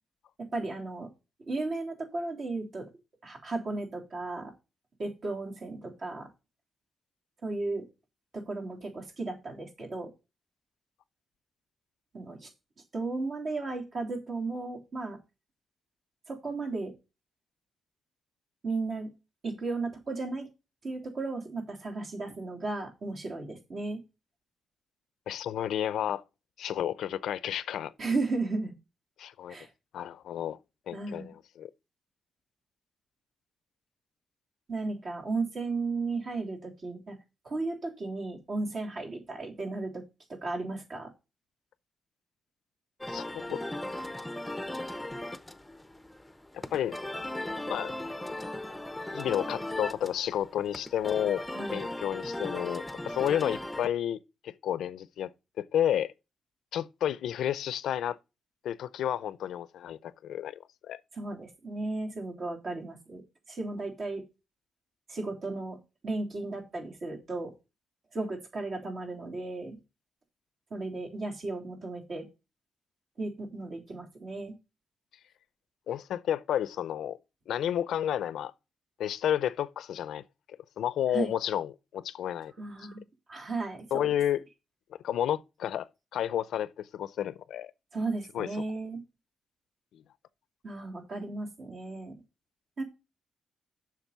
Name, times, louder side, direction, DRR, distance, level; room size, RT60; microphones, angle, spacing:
voice 1, 0.4-1.1 1.5-2.9 3.2-4.5 5.0-6.3 7.4-7.8 8.3-10.1 12.1-12.5 12.9-15.2 16.3-16.9 18.6-19.1 19.4-20.5 20.8-24.0 28.0-28.7 29.5-29.7 30.9-31.3 34.7-37.2 37.4-40.0 40.3-41.1 51.5-51.8 61.1-63.2 63.5-64.2 65.1-65.8 66.0-67.5 68.1-69.8 70.7-72.3 73.2-74.5 81.1-81.3 82.6-83.0 83.3-84.1 87.9-89.0 90.6-92.1 92.8-92.9, right 3 dB, 50° right, 3.4 m, -35 dB
voice 2, 25.3-26.2 26.6-27.9 29.2-29.6 29.9-30.6 30.9-31.7 43.1-43.6 46.5-47.0 47.7-48.0 49.1-51.4 51.7-55.3 55.6-56.1 56.7-58.2 58.6-61.0 75.9-77.2 77.5-78.5 79.0-80.2 80.8-82.5 83.9-84.4 85.0-87.7 88.3-88.5 89.9-90.0, left 10 dB, 85° left, 0.5 m, -31 dB
sound 1, 43.0-53.9, left 1 dB, 5° left, 0.7 m, -37 dB
7.4 x 6.0 x 6.8 m
cardioid pair, 115°, 0 cm